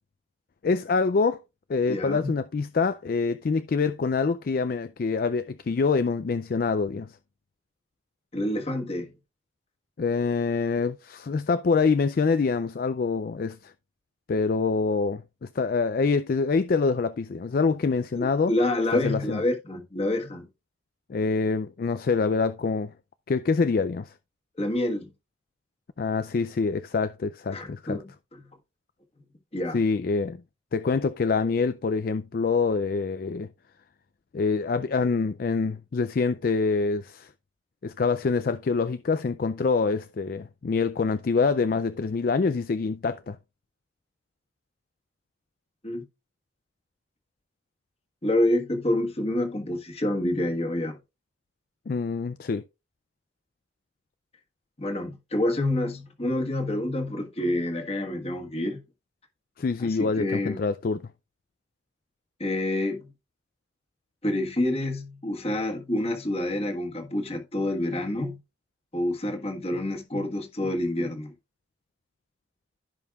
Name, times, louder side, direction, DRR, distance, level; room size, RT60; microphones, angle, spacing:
voice 1, 0.6-1.4 1.7-7.2 10.0-13.7 14.3-18.5 18.9-19.4 21.1-22.9 23.3-24.1 26.0-28.0 29.7-30.4 30.7-33.5 34.3-37.3 37.8-43.4 51.9-52.6 59.6-61.1, left 4 dB, 50° left, 0.4 m, -25 dB
voice 2, 1.9-2.3 8.3-9.1 18.1-20.5 24.6-25.1 27.5-28.0 28.3-28.5 29.5-29.8 45.8-46.1 48.2-51.0 54.8-58.8 59.8-60.6 62.4-63.1 64.2-68.4 68.9-71.3, left 1 dB, 30° left, 1.5 m, -28 dB
15.0 x 5.4 x 2.4 m
head